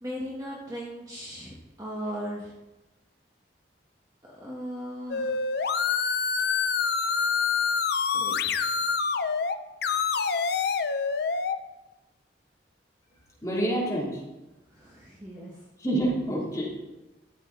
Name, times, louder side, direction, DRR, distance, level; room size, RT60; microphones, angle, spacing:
voice 1, 0.0-2.5 4.3-5.4 8.1-8.8 14.7-15.6, equal, 20° right, -5 dB, 1.4 m, -38 dB
sound 1, 5.1-9.6 9.8-11.6, left 5 dB, 55° left, 0.5 m, -26 dB
voice 2, 13.4-14.1 15.8-16.8, right 1 dB, 15° left, -6 dB, 3.0 m, -27 dB
13.0 x 7.6 x 3.9 m, 1.0 s
head